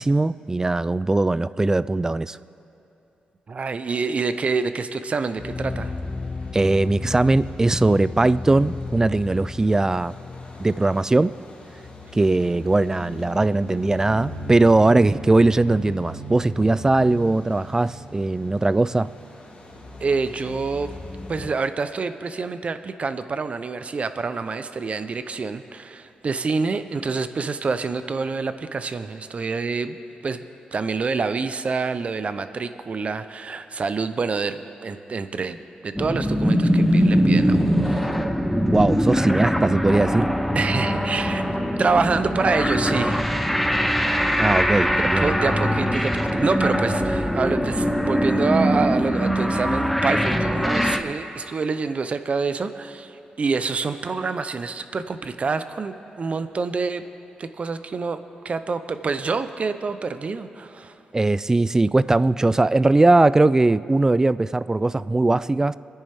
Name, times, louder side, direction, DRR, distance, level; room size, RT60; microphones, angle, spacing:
voice 1, 0.0-2.4 6.5-10.1 10.6-11.3 12.1-19.1 38.7-40.3 44.4-45.3 61.1-65.8, right 2 dB, 20° right, 17 dB, 0.3 m, -20 dB
voice 2, 3.5-5.9 20.0-20.9 21.3-30.0 30.2-30.4 30.7-38.2 40.5-41.4 41.8-43.2 45.0-57.0 57.4-58.2 58.4-61.0, right 4 dB, 45° right, 11 dB, 0.7 m, -27 dB
sound 1, 5.4-21.5, left 2 dB, 45° left, 2.5 m, -36 dB
sound 2, 36.0-51.0, equal, ahead, 0.8 m, -22 dB
26.5 x 10.0 x 3.6 m, 2.8 s
cardioid pair, 75°, 3 cm